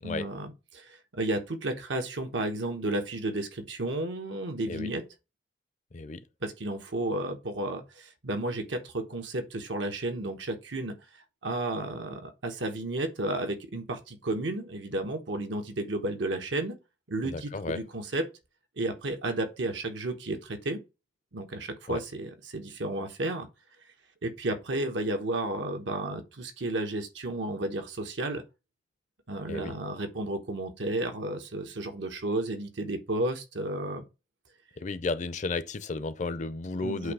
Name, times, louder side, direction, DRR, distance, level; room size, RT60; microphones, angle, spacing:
voice 1, 0.0-5.0 6.4-10.9 11.4-16.8 17.1-18.3 18.8-20.8 21.3-23.5 24.2-28.4 29.3-34.0 36.8-37.1, right 2 dB, 80° right, 1.1 m, -32 dB
voice 2, 5.9-6.2 17.2-17.8 21.9-22.0 29.5-29.7 34.8-37.1, left 3 dB, 40° left, 0.5 m, -33 dB
8.1 x 2.7 x 4.8 m
head